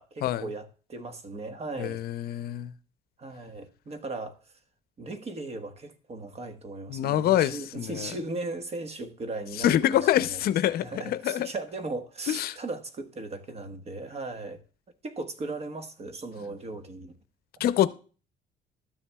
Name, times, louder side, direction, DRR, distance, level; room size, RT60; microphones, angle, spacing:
voice 1, 0.0-2.4 3.2-4.4 5.0-10.4 10.8-14.6 15.0-17.2, right 2 dB, 40° right, 1.3 m, -37 dB
voice 2, 1.8-2.7 6.9-8.1 9.6-11.5 12.3-12.6 17.6-17.9, left 12 dB, 65° left, 0.6 m, -25 dB
12.5 x 7.1 x 2.3 m
cardioid pair, 110°, 17 cm